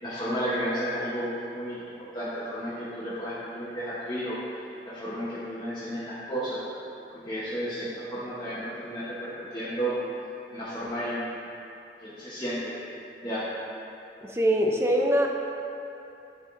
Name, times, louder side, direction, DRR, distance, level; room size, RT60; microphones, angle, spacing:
voice 1, 0.0-4.4 4.9-6.6 7.1-9.9 10.5-11.3 12.0-12.7 13.2-13.5, equal, 25° left, -11 dB, 0.9 m, -32 dB
voice 2, 14.2-15.3, equal, 15° right, 1 dB, 0.4 m, -23 dB
9.1 x 3.5 x 3.6 m, 2.8 s
head